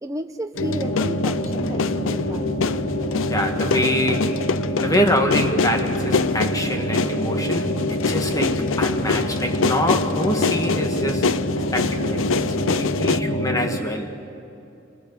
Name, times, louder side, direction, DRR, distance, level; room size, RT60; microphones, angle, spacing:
voice 1, 0.0-2.7, right 1 dB, 15° right, 6 dB, 1.0 m, -32 dB
sound 1, 0.6-13.2, left 5 dB, 85° left, 0.6 m, -26 dB
sound 2, 0.6-13.8, equal, 60° left, 2.1 m, -26 dB
voice 2, 3.3-4.4 4.8-11.3 11.7-14.1, left 1 dB, 20° left, 4 dB, 1.6 m, -25 dB
26.5 x 18.0 x 8.2 m, 2.7 s
head